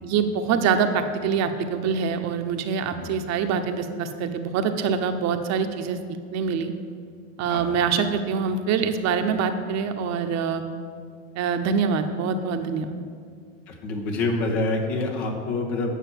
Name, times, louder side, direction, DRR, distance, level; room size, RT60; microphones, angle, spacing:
voice 1, 0.0-6.0 6.3-6.7 7.4-10.6 11.4-12.9, right 6 dB, 45° right, 7 dB, 1.0 m, -25 dB
voice 2, 13.7-16.0, left 2 dB, 70° left, 0 dB, 2.2 m, -27 dB
9.3 x 6.3 x 7.6 m, 2.1 s
hypercardioid pair, 95°, 36 cm